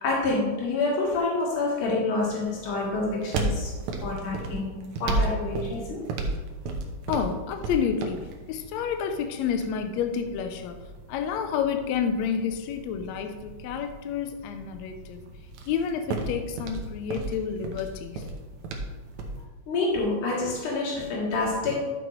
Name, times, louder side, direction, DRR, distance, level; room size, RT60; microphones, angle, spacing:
voice 1, 0.0-3.7 4.0-6.0 19.7-21.9, left 3 dB, 70° left, -4 dB, 3.4 m, -27 dB
sound 1, 2.4-19.4, right 2 dB, 70° right, 2.0 m, -35 dB
voice 2, 7.1-10.8 11.1-15.3 15.7-18.3, left 7 dB, 85° left, 7 dB, 1.6 m, -29 dB
11.5 x 6.2 x 3.1 m, 1.3 s
omnidirectional pair, 3.7 m